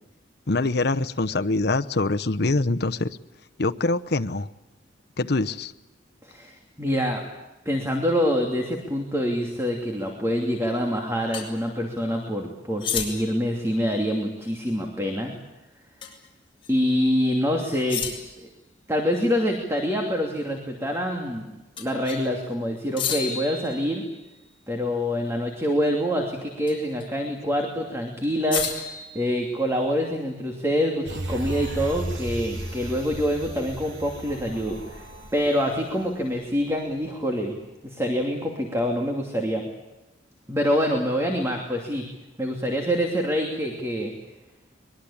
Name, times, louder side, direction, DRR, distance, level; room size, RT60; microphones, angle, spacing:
voice 1, 0.5-3.1 3.6-4.5 5.2-5.7, left 2 dB, 60° left, 9 dB, 0.9 m, -24 dB
voice 2, 6.2-7.2 7.6-15.3 16.7-18.0 18.4-18.5 18.9-21.5 21.8-24.0 24.7-35.0 35.3-37.5 37.8-39.6 40.5-42.1 42.4-44.1, equal, 15° right, 2 dB, 2.7 m, -26 dB
sound 1, 11.3-11.5 12.8-13.5 16.0-16.3 16.6-16.7 17.9-18.5 21.8-22.3 23.0-24.3 26.7-27.0 28.5-29.9, left 7 dB, 30° left, 6.1 m, -32 dB
sound 2, 31.0-36.7 37.1-37.2, right 1 dB, 90° right, 3.6 m, -35 dB
24.0 x 22.0 x 8.7 m, 1.0 s
head